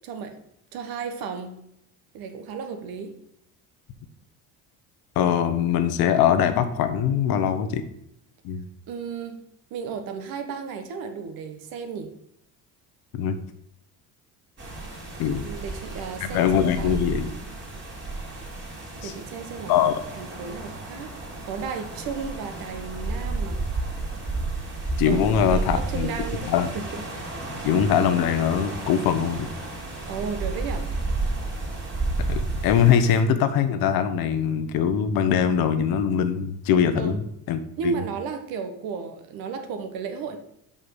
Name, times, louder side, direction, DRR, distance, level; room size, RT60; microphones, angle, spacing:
voice 1, 0.0-0.4 0.7-1.5 2.1-3.1 8.9-9.4 9.7-12.1 15.4-16.5 16.8-17.1 19.0-21.1 21.4-23.6 25.1-25.2 25.5-27.0 30.1-30.9 37.0-37.2 37.8-40.4, right 5 dB, 65° right, 7 dB, 1.3 m, -34 dB
voice 2, 5.2-7.8 8.4-8.6 13.1-13.4 15.2-15.5 16.2-17.3 19.0-19.1 19.7-20.0 25.0-26.1 26.5-26.7 27.6-29.5 32.3-37.2 37.5-37.9, left 8 dB, 70° left, 9 dB, 1.1 m, -22 dB
sound 1, 14.6-33.2, right 2 dB, 30° right, 2.6 m, -32 dB
5.7 x 5.6 x 6.4 m, 0.77 s
supercardioid pair, 105°, 37 cm